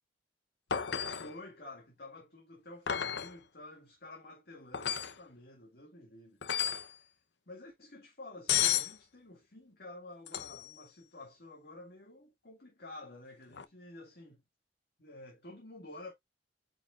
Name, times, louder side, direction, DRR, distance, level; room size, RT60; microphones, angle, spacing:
sound 1, 0.7-1.3 2.9-3.3 4.7-5.2 6.4-6.9 8.5-8.9 10.3-10.7 13.5-13.6, left 9 dB, 80° left, 0.8 m, -32 dB
voice 1, 1.2-6.7 6.9-7.2 7.5-14.4 15.0-16.1, left 2 dB, 60° left, 2.0 m, -50 dB
8.8 x 5.1 x 2.4 m
head